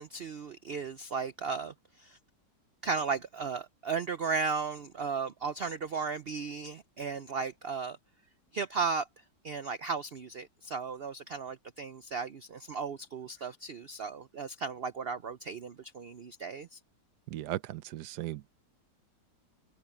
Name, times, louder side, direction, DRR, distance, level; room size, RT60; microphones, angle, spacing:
voice 1, 0.0-2.2 2.8-8.0 8.5-9.1 9.4-16.8, right 5 dB, 90° right, 0.5 m, -35 dB
voice 2, 17.3-18.5, right 14 dB, 70° right, 1.3 m, -37 dB
open air
omnidirectional pair, 1.9 m